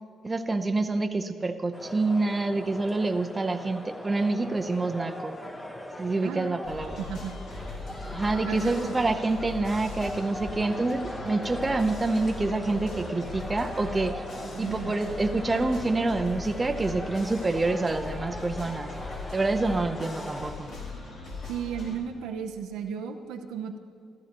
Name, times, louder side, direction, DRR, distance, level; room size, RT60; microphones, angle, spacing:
voice 1, 0.2-5.3 6.0-7.0 8.1-14.2 14.6-18.9 19.3-20.7, right 3 dB, 20° right, 7 dB, 0.7 m, -27 dB
sound 1, 1.7-20.5, left 1 dB, 15° left, 1.1 m, -40 dB
sound 2, 6.6-22.0, left 3 dB, 70° left, 2.6 m, -39 dB
voice 2, 7.0-7.3 8.5-8.9 14.5-14.9 21.5-23.8, right 7 dB, 90° right, 5 dB, 0.7 m, -34 dB
15.0 x 12.5 x 3.0 m, 2.4 s
cardioid pair, 90°, 0 cm